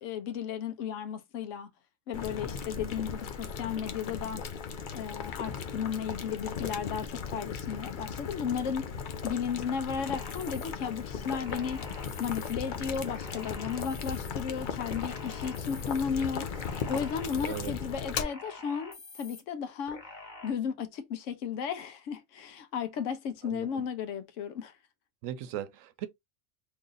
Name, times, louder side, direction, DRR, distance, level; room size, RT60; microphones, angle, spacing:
voice 1, 0.0-1.7 2.1-4.4 4.9-8.9 9.2-11.8 12.2-16.5 16.9-20.0 20.4-24.7, left 7 dB, 75° left, 1.1 m, -34 dB
Boiling, 2.1-18.2, left 6 dB, 55° left, 0.6 m, -37 dB
sound 1, 10.1-10.7 11.3-12.5 13.1-14.3 14.8-16.0 16.5-17.7 18.2-19.4 19.9-20.5, left 2 dB, 35° left, 1.2 m, -47 dB
voice 2, 23.4-23.8 25.2-26.1, right 11 dB, 85° right, 1.0 m, -38 dB
3.0 x 2.5 x 3.8 m
omnidirectional pair, 1.3 m